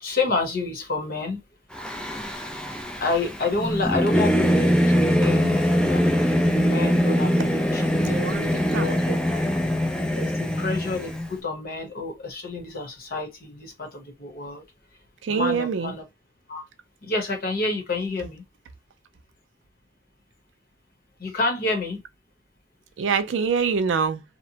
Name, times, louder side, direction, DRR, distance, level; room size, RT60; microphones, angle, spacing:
voice 1, 0.0-1.4 3.0-6.1 6.4-7.9 8.7-9.2 10.1-14.6 15.3-16.0 16.5-16.6 17.0-18.4 21.2-22.0, left 3 dB, 50° left, 0.9 m, -29 dB
Singing / Musical instrument, 1.7-11.3, equal, 5° left, 0.3 m, -22 dB
voice 2, 8.0-8.9 15.2-15.9 23.0-24.2, right 6 dB, 75° right, 0.4 m, -25 dB
2.8 x 2.1 x 2.7 m
head